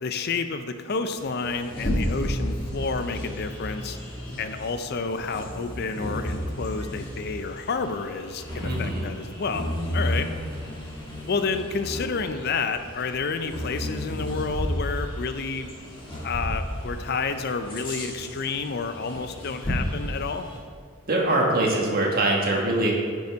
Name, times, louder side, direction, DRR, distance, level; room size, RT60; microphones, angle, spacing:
voice 1, 0.0-4.0 4.4-10.3 11.3-15.7 16.2-20.5, left 4 dB, 50° left, 9 dB, 0.5 m, -30 dB
Bird vocalization bird call bird song, 1.1-20.6, equal, 25° left, 2.0 m, -33 dB
voice 2, 8.6-9.0 21.1-22.9, right 2 dB, 45° right, -1 dB, 1.5 m, -23 dB
10.0 x 5.4 x 4.5 m, 2.1 s
head